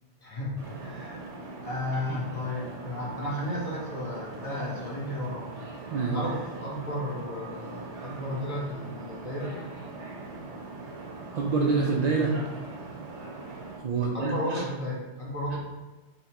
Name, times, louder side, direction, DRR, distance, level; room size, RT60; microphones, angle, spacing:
voice 1, 0.2-1.3 1.6-5.5 6.1-9.6 14.1-15.6, left 1 dB, 30° left, -6 dB, 1.1 m, -33 dB
sound 1, 0.6-13.8, right 3 dB, 85° right, 1.1 m, -41 dB
voice 2, 11.3-12.4 13.8-14.6 15.5-15.6, right 4 dB, 50° right, -3 dB, 0.5 m, -26 dB
5.5 x 3.3 x 2.9 m, 1.2 s
omnidirectional pair, 1.2 m